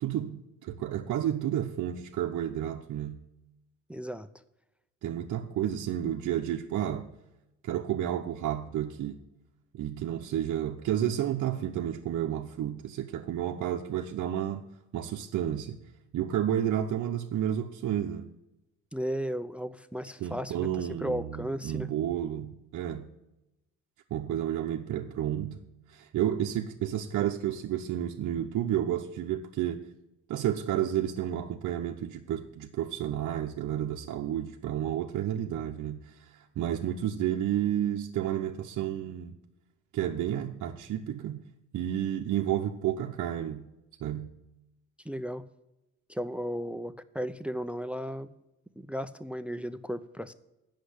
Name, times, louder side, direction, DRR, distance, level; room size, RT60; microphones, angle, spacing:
voice 1, 0.0-3.2 5.0-7.1 7.6-9.2 9.7-14.7 14.9-15.8 16.1-18.3 20.2-23.1 24.1-29.8 30.3-39.3 39.9-41.4 41.7-43.7 44.0-44.3, right 11 dB, 70° right, 2 dB, 0.8 m, -31 dB
voice 2, 3.9-4.3 18.9-21.9 45.0-45.4 46.1-48.3 48.8-50.3, equal, 5° right, 14 dB, 0.5 m, -35 dB
8.3 x 6.5 x 8.0 m, 0.96 s
cardioid pair, 90°, 30 cm